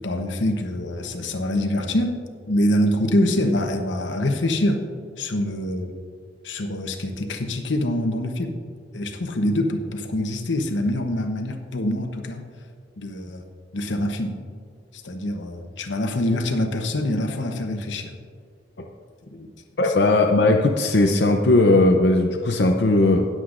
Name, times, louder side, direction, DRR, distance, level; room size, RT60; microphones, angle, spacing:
voice 1, 0.0-4.8 5.2-5.9 6.4-8.5 8.9-12.4 13.0-13.4 13.7-14.4 15.0-18.1 19.3-19.5, left 1 dB, 90° left, 5 dB, 1.0 m, -25 dB
voice 2, 19.8-23.3, left 2 dB, 65° left, 2 dB, 0.6 m, -18 dB
19.5 x 7.7 x 2.6 m, 2.1 s
head